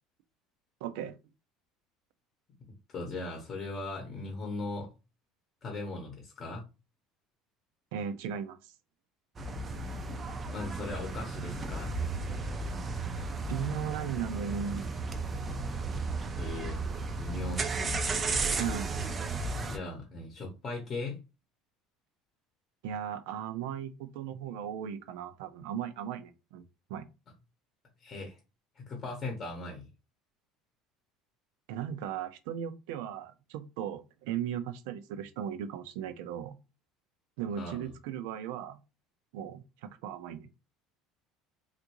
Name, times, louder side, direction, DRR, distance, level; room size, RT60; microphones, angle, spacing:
voice 1, 0.8-1.1 7.9-8.6 13.5-14.9 18.6-19.0 22.8-26.6 26.9-27.1 31.7-36.6 37.4-38.8 39.3-40.5, right 9 dB, 80° right, 0.4 m, -37 dB
voice 2, 2.9-4.9 5.6-6.6 10.5-11.9 16.4-16.8 17.2-17.6 19.6-21.2 28.0-28.4 28.8-29.8 37.5-37.9, left 2 dB, 25° left, 0.8 m, -38 dB
sound 1, 9.4-19.8, right 3 dB, 20° right, 0.4 m, -34 dB
3.5 x 2.4 x 2.9 m
cardioid pair, 165°, 0 cm